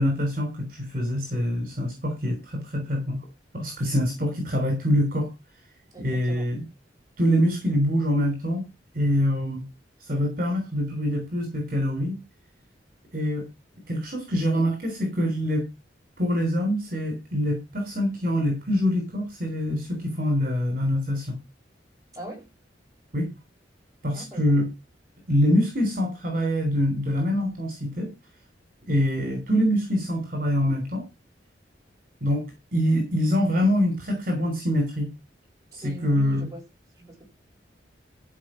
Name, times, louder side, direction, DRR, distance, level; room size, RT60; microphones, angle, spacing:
voice 1, 0.0-3.3 3.5-5.3 6.0-6.6 7.2-8.7 8.9-9.7 10.0-12.2 13.1-13.5 13.9-15.7 16.2-21.4 23.1-23.3 24.0-24.7 25.3-28.1 28.9-31.1 32.2-32.4 32.7-35.1 35.7-36.5, equal, 50° right, 3.4 m, -25 dB
voice 2, 5.9-6.5 22.1-22.5 24.1-24.7 35.7-36.6 37.0-37.2, right 1 dB, 20° right, 7.5 m, -41 dB
14.0 x 5.3 x 6.2 m
head